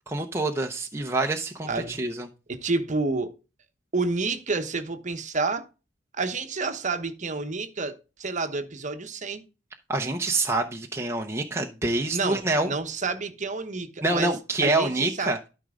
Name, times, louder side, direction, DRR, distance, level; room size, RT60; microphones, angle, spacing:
voice 1, 0.1-2.3 9.9-12.7 14.0-15.4, right 2 dB, 15° right, 0.7 m, -26 dB
voice 2, 1.6-2.0 2.6-3.3 3.9-5.7 6.1-9.4 12.1-14.3 14.6-15.3, right 3 dB, 40° right, 1.0 m, -29 dB
12.5 x 5.1 x 3.7 m
head